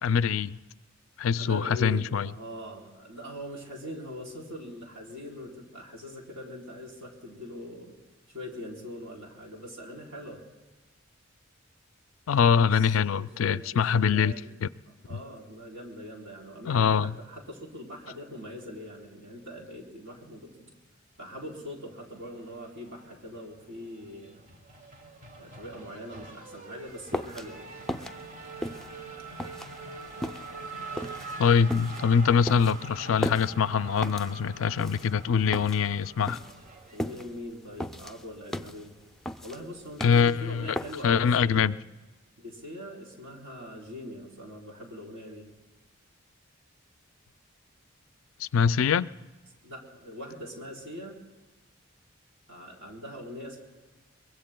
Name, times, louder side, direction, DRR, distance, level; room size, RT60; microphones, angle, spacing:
voice 1, 0.0-0.6 1.2-2.3 12.3-14.3 14.6-14.7 15.1-15.2 16.7-17.1 31.4-36.4 40.0-40.8 41.0-41.7 48.4-49.1, left 6 dB, 80° left, 0.4 m, -24 dB
voice 2, 1.4-8.0 8.3-10.4 12.8-14.5 15.1-20.7 21.2-24.4 25.3-27.6 36.9-38.9 39.4-41.7 42.4-45.5 49.6-51.2 52.5-53.6, left 1 dB, 70° right, 3.8 m, -42 dB
Race car auto racing / Accelerating revving vroom, 22.4-23.4 23.7-37.4, right 3 dB, 40° right, 1.2 m, -44 dB
sound 1, 26.9-41.3, left 1 dB, ahead, 0.5 m, -37 dB
24.0 x 22.0 x 2.2 m
head